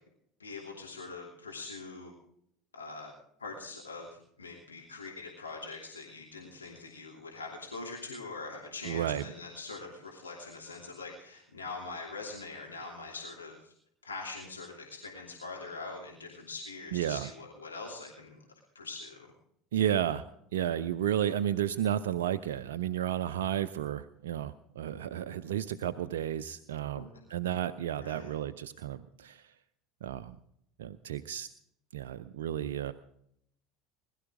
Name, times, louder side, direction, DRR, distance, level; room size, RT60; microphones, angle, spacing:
voice 1, 0.4-2.1 2.7-3.1 3.4-4.1 4.4-13.7 14.0-18.4 18.7-19.3 26.9-27.0 28.0-28.3, left 3 dB, 85° left, -2 dB, 2.9 m, -43 dB
voice 2, 8.8-9.2 16.9-17.3 19.7-20.2 20.5-29.5 30.0-30.4 30.8-31.5 31.9-32.9, right 11 dB, 70° right, 11 dB, 0.5 m, -32 dB
21.0 x 12.5 x 3.7 m, 0.71 s
figure-of-eight pair, 70°, 0 cm